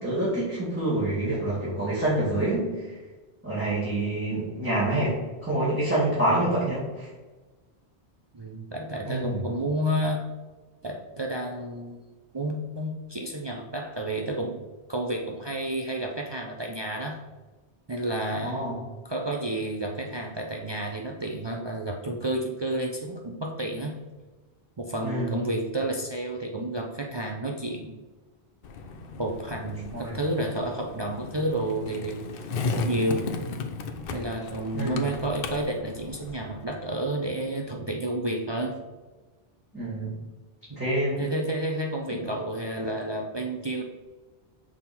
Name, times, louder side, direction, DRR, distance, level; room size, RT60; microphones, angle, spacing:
voice 1, 0.0-3.0 3.4-5.1 5.4-7.1 9.1-9.4 18.4-18.8 25.0-25.3 29.9-30.1 34.7-35.1 39.7-40.1 40.8-41.2, right 1 dB, 10° right, -11 dB, 1.8 m, -27 dB
voice 2, 8.3-10.2 10.8-12.0 12.3-14.6 14.9-17.2 17.9-18.7 19.0-23.9 24.8-27.9 29.2-32.4 32.7-33.3 34.1-38.8 40.7-40.8 41.2-43.8, right 1 dB, 40° right, 1 dB, 0.4 m, -30 dB
Skateboard, 28.6-36.6, left 4 dB, 60° left, 0.7 m, -35 dB
6.0 x 3.6 x 4.3 m, 1.3 s
omnidirectional pair, 1.1 m